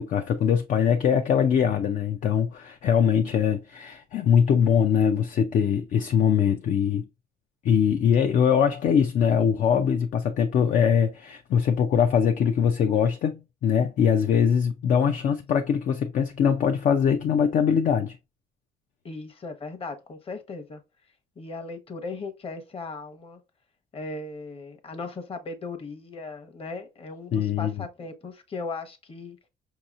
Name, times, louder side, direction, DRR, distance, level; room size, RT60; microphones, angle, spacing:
voice 1, 0.0-7.0 7.6-18.2 27.3-27.8, left 7 dB, 50° left, 0.5 m, -22 dB
voice 2, 19.0-20.8 21.4-23.4 23.9-29.4, left 3 dB, 35° left, 1.0 m, -37 dB
5.4 x 2.9 x 2.4 m
cardioid pair, 110°, 17 cm